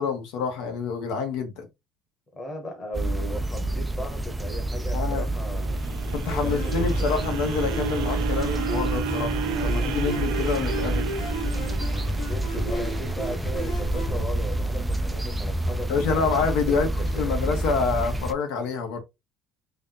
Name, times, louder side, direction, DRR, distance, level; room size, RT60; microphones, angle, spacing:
voice 1, 0.0-1.7 4.9-5.3 6.1-11.0 15.9-19.0, left 5 dB, 70° left, 1.2 m, -27 dB
voice 2, 2.3-5.8 6.4-7.2 12.2-16.3 16.7-17.4, equal, 15° left, 1.1 m, -37 dB
sound 1, 2.9-18.3, right 1 dB, 5° right, 0.4 m, -28 dB
sound 2, 5.1-13.3, right 8 dB, 80° right, 0.7 m, -34 dB
sound 3, 6.3-14.3, equal, 35° left, 1.6 m, -35 dB
3.3 x 2.7 x 3.8 m
cardioid pair, 170°, 0 cm